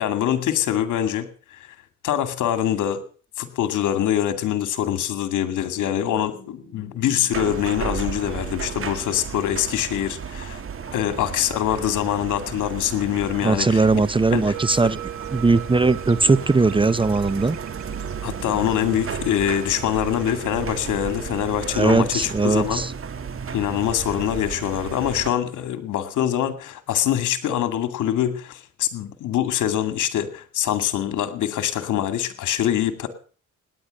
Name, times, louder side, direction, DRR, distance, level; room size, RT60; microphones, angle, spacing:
voice 1, 0.0-1.7 2.0-3.0 3.4-10.6 10.9-13.9 14.3-14.5 18.2-22.8 23.5-33.1, left 11 dB, 80° left, 10 dB, 2.3 m, -24 dB
sound 1, 5.8-13.3, left 4 dB, 55° left, 6.4 m, -49 dB
sound 2, 7.3-25.3, right 6 dB, 45° right, 1.9 m, -33 dB
voice 2, 13.4-15.0 15.3-17.6 21.7-22.9, right 3 dB, 15° right, 19 dB, 0.7 m, -19 dB
sound 3, 14.5-20.2, right 13 dB, 70° right, 1.6 m, -39 dB
18.0 x 10.5 x 6.4 m, 0.41 s
cardioid pair, 90°, 30 cm